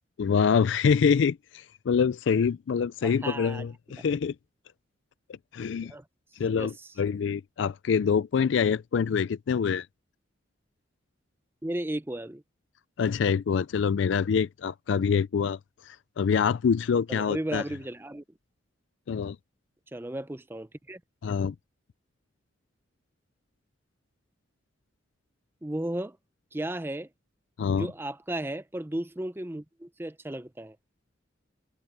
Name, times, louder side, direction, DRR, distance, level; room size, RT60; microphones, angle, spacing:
voice 1, 0.2-4.3 5.5-5.9 6.4-9.9 13.0-15.6 15.9-17.6 19.1-19.4 21.2-21.5 27.6-27.9, left 6 dB, 65° left, 0.4 m, -25 dB
voice 2, 3.0-3.7 3.9-4.0 5.9-6.0 6.5-6.9 11.6-12.4 17.1-18.2 19.9-21.0 25.6-26.2 26.5-27.1 27.7-30.8, right 1 dB, 10° right, 0.6 m, -34 dB
head